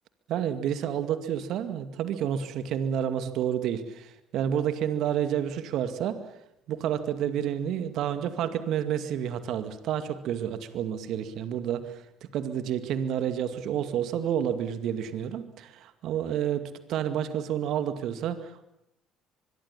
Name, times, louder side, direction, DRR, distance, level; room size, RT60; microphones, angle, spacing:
voice 1, 0.3-6.2 6.7-12.0 12.3-18.7, right 9 dB, 65° right, 10 dB, 2.2 m, -30 dB
24.0 x 22.5 x 7.2 m, 0.80 s
hypercardioid pair, 55°, 0 cm